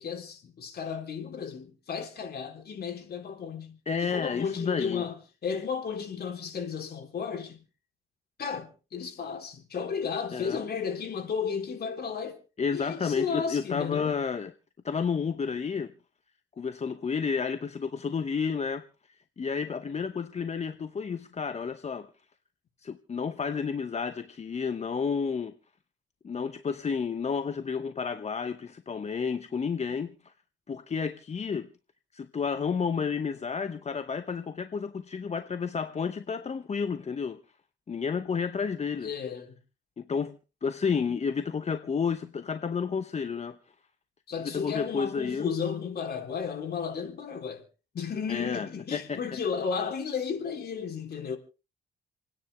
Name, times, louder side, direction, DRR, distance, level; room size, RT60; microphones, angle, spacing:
voice 1, 0.0-7.6 8.4-12.4 12.7-14.2 39.0-39.6 44.3-47.7 47.9-51.4, left 6 dB, 50° left, 3.4 m, -34 dB
voice 2, 3.9-5.0 10.3-10.6 12.6-14.5 14.8-15.9 16.6-18.9 19.4-22.1 22.8-25.5 26.2-30.3 30.7-31.7 32.1-37.4 37.9-39.1 40.0-43.6 44.4-45.5 48.3-49.2, left 6 dB, 35° left, 0.8 m, -31 dB
28.5 x 10.0 x 3.4 m
cardioid pair, 90°, 20 cm